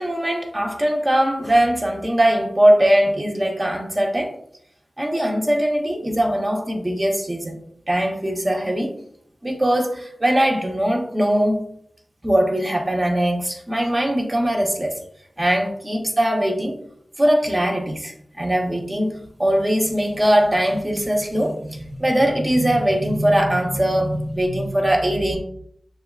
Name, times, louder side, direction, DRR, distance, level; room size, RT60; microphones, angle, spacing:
voice 1, 0.0-4.3 5.0-7.6 7.9-8.9 9.4-11.6 12.2-15.0 15.4-16.8 17.2-25.4, right 1 dB, 30° right, 1 dB, 0.9 m, -21 dB
6.8 x 2.3 x 2.3 m, 0.67 s
wide cardioid pair, 65°, 0 cm